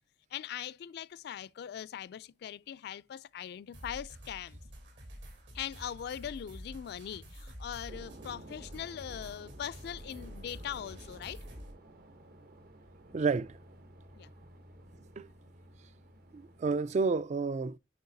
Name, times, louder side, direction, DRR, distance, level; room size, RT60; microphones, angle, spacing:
voice 1, 0.3-4.6 5.5-11.4 14.1-14.3, left 9 dB, 60° left, 0.3 m, -41 dB
sound 1, 3.7-11.7, equal, 75° right, 3.0 m, -48 dB
sound 2, 7.9-17.2, right 1 dB, 55° right, 0.9 m, -54 dB
voice 2, 13.1-13.6 15.2-15.3 16.3-17.8, right 4 dB, 40° right, 0.3 m, -30 dB
9.4 x 4.4 x 2.7 m
head